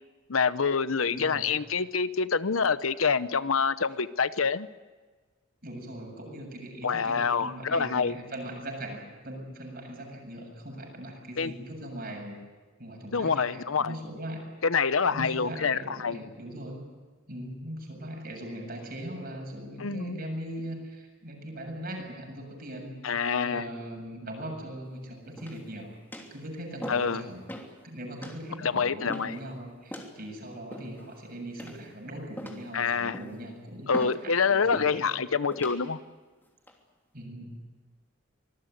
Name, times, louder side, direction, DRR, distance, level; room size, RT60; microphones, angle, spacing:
voice 1, 0.3-4.7 6.8-8.1 11.4-11.5 13.1-14.0 14.6-16.2 19.8-20.2 23.0-23.7 26.9-27.2 28.6-29.4 32.7-33.2 33.9-36.0, left 5 dB, 85° left, 15 dB, 0.9 m, -26 dB
voice 2, 1.1-1.5 5.6-12.4 12.8-14.4 15.1-16.8 17.3-23.0 23.4-25.9 26.3-27.4 27.8-35.1 37.1-37.6, right 1 dB, 50° right, 2 dB, 7.5 m, -40 dB
sound 1, 25.4-25.7 26.1-26.4 26.8-27.1 27.5-27.7 28.2-28.4 29.1-29.4 29.9-30.1 30.7-31.1 31.6-32.0 32.4-32.7 33.1-33.4 33.9-34.2 34.7-35.0 35.5-35.8 36.4-36.7, equal, 10° left, 3.1 m, -40 dB
25.5 x 19.5 x 9.4 m, 1.4 s
head